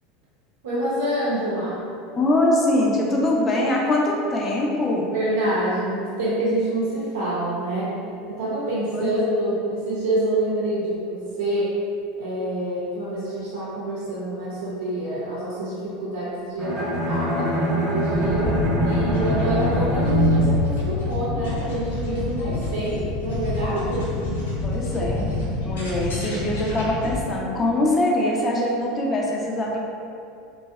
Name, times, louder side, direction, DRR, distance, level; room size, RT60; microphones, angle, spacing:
voice 1, 0.6-1.8 5.1-7.9 8.3-11.8 12.2-18.6 18.8-24.1, right 1 dB, 80° right, -9 dB, 0.5 m, -26 dB
voice 2, 2.2-5.1 8.9-9.1 24.6-25.3 25.6-29.8, left 1 dB, 30° left, -2 dB, 0.5 m, -23 dB
Bowed string instrument, 16.6-21.6, equal, 25° right, 0.8 m, -24 dB
sound 1, 18.1-27.2, left 2 dB, 80° left, 0.5 m, -27 dB
2.6 x 2.0 x 2.3 m, 2.5 s
hypercardioid pair, 85°, 0 cm